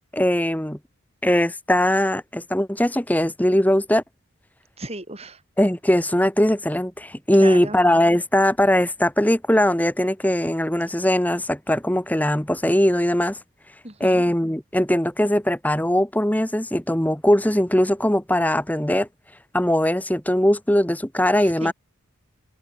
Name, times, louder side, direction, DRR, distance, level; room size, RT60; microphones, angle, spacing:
voice 1, 0.1-0.8 1.2-4.0 5.6-13.4 14.0-19.1 19.5-21.7, left 1 dB, 5° left, 1.3 m, -20 dB
voice 2, 4.8-5.4 7.4-7.8 13.8-14.2 21.6-21.7, right 2 dB, 30° right, 4.6 m, -34 dB
open air
head